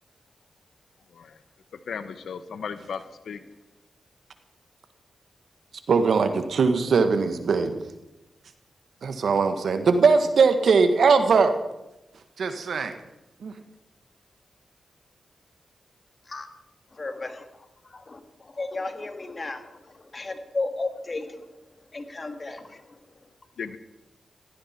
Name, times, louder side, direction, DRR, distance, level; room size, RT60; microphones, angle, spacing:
voice 1, 1.9-3.4 23.6-23.8, left 6 dB, 80° left, 12 dB, 0.9 m, -35 dB
voice 2, 5.9-7.9 9.0-11.6 12.4-12.9 13.4-13.5, right 4 dB, 75° right, 8 dB, 1.6 m, -20 dB
voice 3, 16.9-21.5 21.9-23.0, left 3 dB, 45° left, 7 dB, 2.1 m, -34 dB
17.0 x 16.5 x 4.5 m, 0.95 s
cardioid pair, 50°, 0 cm